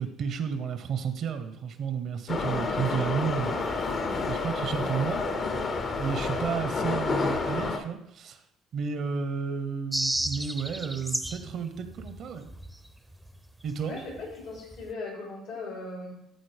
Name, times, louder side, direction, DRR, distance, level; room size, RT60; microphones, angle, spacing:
voice 1, 0.0-4.0 4.3-5.2 6.0-8.4 8.7-12.5 13.6-13.9, right 6 dB, 60° right, 10 dB, 0.8 m, -32 dB
Subway metro underground, 2.3-7.8, left 3 dB, 50° left, 0.8 m, -29 dB
sound 1, 9.9-11.5 11.8-13.4 13.7-13.8 14.1-14.3 14.6-14.9, right 1 dB, 5° right, 0.6 m, -33 dB
voice 2, 13.9-16.1, left 3 dB, 85° left, -2 dB, 3.3 m, -38 dB
12.0 x 4.1 x 3.4 m, 0.79 s
supercardioid pair, 70°, 0 cm